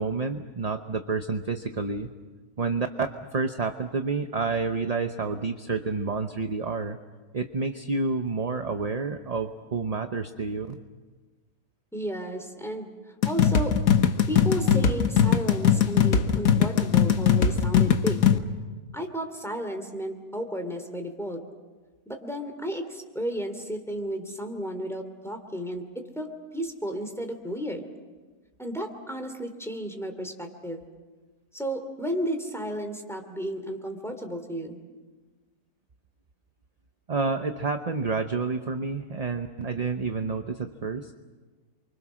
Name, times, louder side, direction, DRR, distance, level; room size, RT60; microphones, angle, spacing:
voice 1, 0.0-2.1 2.6-3.1 3.3-7.0 7.3-10.8 37.1-41.1, right 4 dB, 30° right, 6 dB, 0.8 m, -29 dB
voice 2, 11.9-12.9 13.2-13.8 14.3-18.2 18.9-21.4 22.1-27.9 28.6-30.8 31.5-34.8, equal, ahead, 5 dB, 2.7 m, -33 dB
sound 1, 13.2-18.4, left 8 dB, 65° left, 1.5 m, -21 dB
29.0 x 24.5 x 6.3 m, 1.4 s
omnidirectional pair, 1.6 m